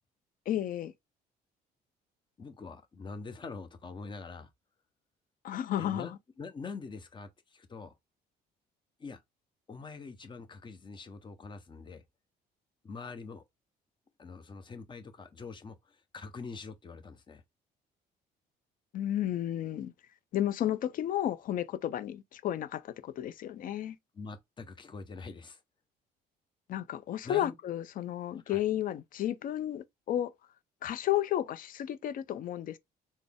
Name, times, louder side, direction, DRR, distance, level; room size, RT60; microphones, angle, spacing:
voice 1, 0.5-0.9 5.4-6.1 18.9-19.9 20.3-24.0 26.7-30.3 30.8-32.8, left 12 dB, 55° left, 0.5 m, -32 dB
voice 2, 2.4-4.5 5.8-7.9 9.0-9.2 9.7-12.0 12.8-13.4 14.2-17.4 24.1-25.6 27.2-27.5 28.3-28.6, left 4 dB, 30° left, 0.8 m, -44 dB
4.1 x 2.0 x 3.5 m
cardioid pair, 110°, 17 cm